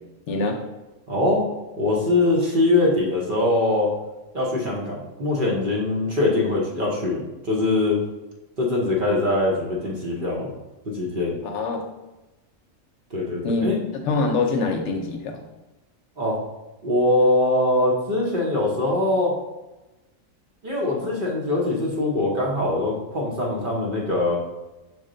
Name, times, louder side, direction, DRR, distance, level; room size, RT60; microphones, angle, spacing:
voice 1, 0.3-0.6 11.4-11.8 13.4-15.4, left 3 dB, 65° left, 3 dB, 0.8 m, -24 dB
voice 2, 1.1-1.5 1.8-4.0 4.3-8.0 8.6-10.5 10.9-11.4 13.1-13.9 16.2-16.4 16.8-19.4 20.6-24.4, left 2 dB, 45° right, -3 dB, 0.8 m, -22 dB
6.2 x 2.1 x 3.7 m, 1.0 s
omnidirectional pair, 1.4 m